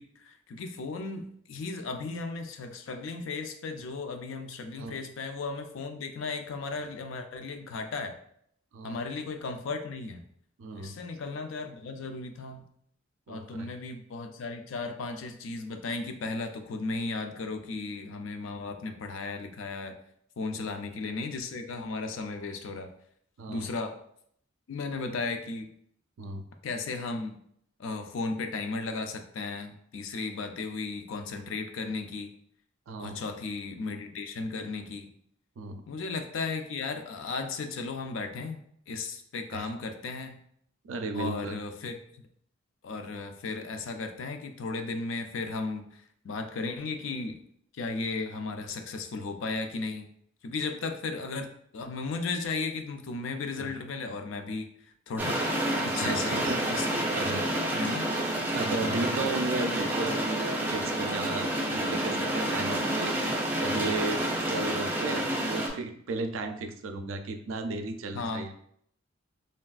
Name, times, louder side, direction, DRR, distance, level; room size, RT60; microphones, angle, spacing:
voice 1, 0.0-8.2 8.8-10.2 10.7-12.6 13.3-20.0 20.4-22.9 23.5-23.9 24.7-25.7 26.6-27.4 27.8-32.3 33.0-35.1 35.9-40.4 41.1-41.9 42.8-47.4 47.7-50.1 50.4-54.7 55.1-56.4 56.7-57.2 57.7-58.1 68.1-68.5, left 3 dB, 75° left, 6 dB, 0.4 m, -35 dB
voice 2, 4.8-5.1 8.7-9.0 10.6-11.0 13.3-13.7 18.5-18.6 20.6-20.8 23.4-23.7 26.2-26.4 32.9-33.2 35.6-35.8 39.5-39.7 40.8-41.6 53.6-53.7 55.9-56.6 57.1-57.5 58.5-63.2 63.6-68.5, right 3 dB, 85° right, 7 dB, 0.4 m, -35 dB
sound 1, 55.2-65.7, right 1 dB, 10° right, 0.5 m, -29 dB
3.3 x 2.4 x 2.3 m, 0.67 s
head